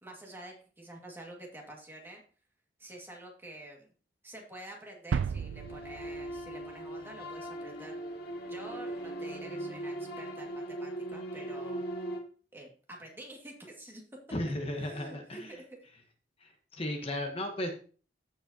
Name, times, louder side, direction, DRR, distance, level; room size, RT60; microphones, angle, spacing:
voice 1, 0.0-2.2 2.8-3.9 4.2-8.0 8.5-11.8 12.5-14.0 14.8-15.8, right 1 dB, 15° right, -1 dB, 1.9 m, -48 dB
sound 1, 5.1-7.2, right 6 dB, 85° right, 0.3 m, -34 dB
sound 2, 5.2-12.2, right 1 dB, 60° left, 1.5 m, -39 dB
voice 2, 14.3-15.6 16.4-17.7, left 1 dB, 35° left, 4 dB, 1.1 m, -35 dB
15.0 x 5.0 x 2.8 m, 0.40 s
head